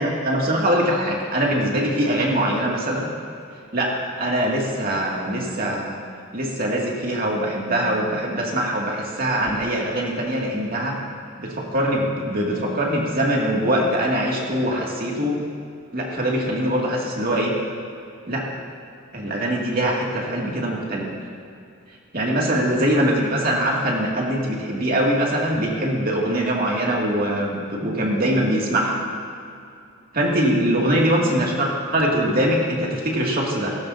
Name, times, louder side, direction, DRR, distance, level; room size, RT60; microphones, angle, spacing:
voice 1, 0.0-3.0 3.7-3.9 4.2-6.0 6.3-11.0 11.4-15.4 15.9-17.5 18.3-18.4 19.1-21.1 22.1-29.0 30.2-33.7, right 1 dB, 45° right, -2 dB, 2.5 m, -22 dB
18.0 x 17.5 x 2.8 m, 2.5 s
head